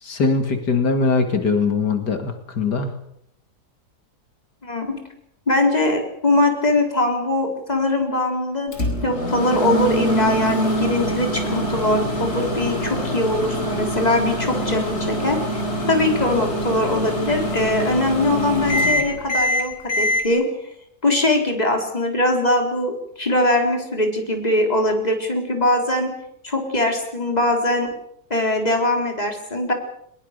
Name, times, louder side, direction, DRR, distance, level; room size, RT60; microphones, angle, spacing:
voice 1, 0.0-2.9, left 4 dB, 90° left, 6 dB, 2.9 m, -21 dB
voice 2, 4.6-5.0 5.5-8.8 9.0-20.7 21.0-26.1 26.4-27.9 28.3-29.7, left 1 dB, 25° left, 3 dB, 4.3 m, -21 dB
Microwave oven, 8.7-20.2, equal, 40° left, 4.7 m, -24 dB
21.5 x 21.5 x 6.8 m, 0.73 s
omnidirectional pair, 1.7 m